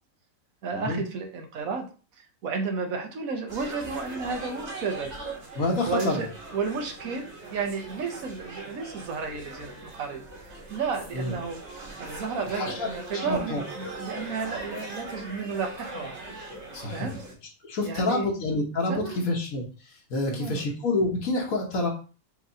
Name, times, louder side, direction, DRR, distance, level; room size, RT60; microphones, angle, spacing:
voice 1, 0.6-1.9 2.2-5.1 5.8-11.6 12.0-16.2 16.9-17.2 17.8-18.3 18.9-19.3 20.3-20.7, right 5 dB, 80° right, 1.4 m, -32 dB
b and m crowd, 3.5-17.3, right 2 dB, 55° right, 1.6 m, -40 dB
voice 2, 5.5-6.2 11.1-11.3 12.5-13.6 16.7-17.1 17.6-21.9, left 2 dB, 80° left, 1.5 m, -28 dB
6.5 x 3.0 x 2.7 m
omnidirectional pair, 1.5 m